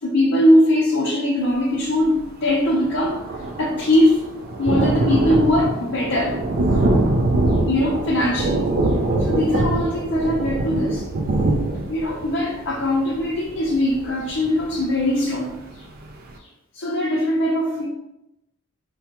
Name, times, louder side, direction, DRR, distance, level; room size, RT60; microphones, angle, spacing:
voice 1, 0.0-3.2 3.6-4.2 4.6-6.4 7.7-11.0 11.9-15.8 16.7-17.9, left 1 dB, 60° left, -5 dB, 0.6 m, -21 dB
Thunder, 2.2-2.3 2.5-15.1 15.6-15.7 16.0-16.1, right 2 dB, 45° right, 0.4 m, -23 dB
4.4 x 2.3 x 2.9 m, 0.90 s
head